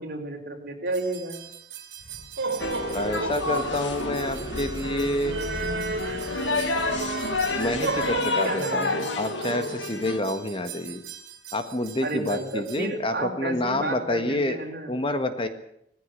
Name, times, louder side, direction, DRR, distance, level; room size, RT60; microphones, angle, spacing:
voice 1, 0.0-1.4 8.4-9.1 12.0-14.9, right 2 dB, 55° right, 3 dB, 4.5 m, -32 dB
sound 1, 0.9-12.8, right 3 dB, 70° right, 3.7 m, -34 dB
sound 2, 2.6-10.2, left 3 dB, 90° left, 2.0 m, -30 dB
sound 3, 2.6-8.3, right 1 dB, 20° right, 1.2 m, -40 dB
voice 2, 2.9-5.4 7.6-11.0 11.5-14.6 14.9-15.5, left 1 dB, 30° left, 9 dB, 1.7 m, -28 dB
18.5 x 15.5 x 9.9 m, 0.74 s
head